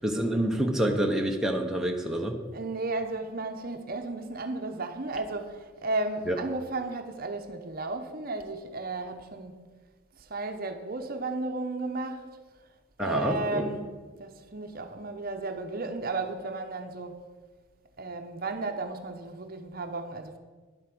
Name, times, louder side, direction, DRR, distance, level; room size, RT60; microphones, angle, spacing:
voice 1, 0.0-2.4 6.3-6.4 13.0-13.7, right 1 dB, ahead, 0.9 m, -27 dB
voice 2, 2.5-9.6 10.2-12.4 13.0-13.9 14.2-17.2 18.0-20.4, right 2 dB, 45° right, 0.9 m, -34 dB
10.5 x 8.2 x 6.1 m
head